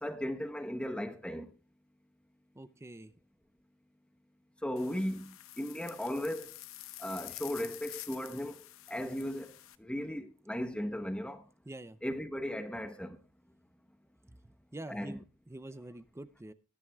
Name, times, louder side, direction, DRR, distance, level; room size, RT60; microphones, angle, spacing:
voice 1, 0.0-1.5 4.6-6.6 7.0-11.4 12.0-13.2 14.9-15.2, equal, 5° left, 1.0 m, -37 dB
voice 2, 2.6-3.1 11.7-12.0 14.7-16.5, right 1 dB, 10° right, 0.5 m, -46 dB
sound 1, 4.8-9.8, left 15 dB, 65° left, 0.8 m, -48 dB
20.0 x 10.5 x 2.3 m
head